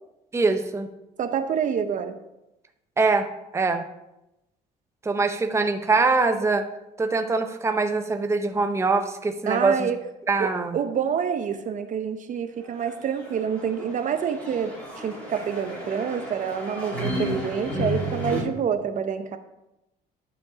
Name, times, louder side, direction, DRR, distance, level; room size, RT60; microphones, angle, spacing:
voice 1, 0.3-0.9 3.0-3.3 3.5-3.8 5.0-6.7 7.0-9.9 10.3-10.8, right 3 dB, 15° right, 7 dB, 0.7 m, -23 dB
voice 2, 1.2-2.2 9.5-10.0 10.4-19.4, right 7 dB, 50° right, 9 dB, 0.7 m, -27 dB
sound 1, 12.7-18.4, equal, 10° left, 3.6 m, -33 dB
11.5 x 5.1 x 5.1 m, 0.92 s
cardioid pair, 110°, 17 cm